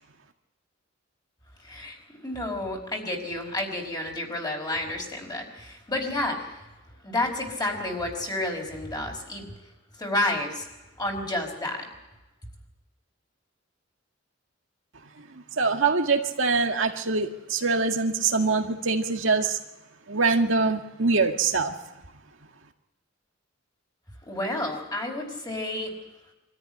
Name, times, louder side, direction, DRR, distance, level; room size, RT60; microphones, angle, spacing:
voice 1, 1.6-2.0 2.2-6.6 7.0-9.5 10.0-10.7 11.0-11.9 24.3-25.9, left 1 dB, 20° left, 2 dB, 4.9 m, -30 dB
voice 2, 15.3-19.6 20.1-21.7, right 4 dB, 75° right, 4 dB, 1.9 m, -24 dB
24.5 x 14.0 x 9.9 m, 1.0 s
head